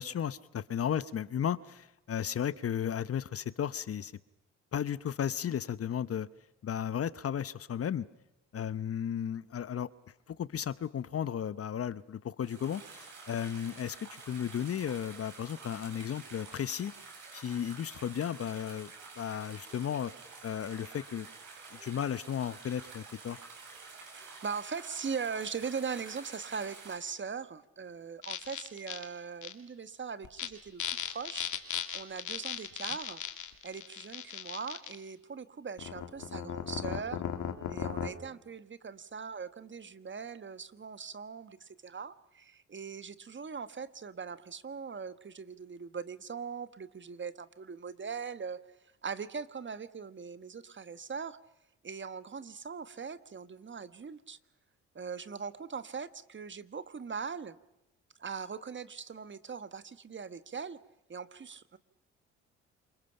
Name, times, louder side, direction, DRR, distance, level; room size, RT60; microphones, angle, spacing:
voice 1, 0.0-4.1 4.7-6.3 6.6-8.1 8.5-9.9 10.3-16.9 17.3-18.9 19.2-20.1 20.4-21.3 21.8-23.4, left 9 dB, 45° left, 17 dB, 0.9 m, -34 dB
sound 1, 12.4-27.0, right 4 dB, 65° right, 7.7 m, -49 dB
voice 2, 24.2-30.8 31.1-31.5 31.9-33.2 33.6-37.2 37.7-48.6 49.0-51.4 51.8-54.4 54.9-57.6 58.2-60.8 61.1-61.8, right 6 dB, 35° right, 13 dB, 1.4 m, -40 dB
sound 2, 28.2-29.0 29.4-29.5 30.2-30.5 30.8-34.9 35.8-38.1, left 9 dB, 60° left, 2.4 m, -37 dB
28.0 x 25.0 x 5.8 m, 0.93 s
hypercardioid pair, 50°, 34 cm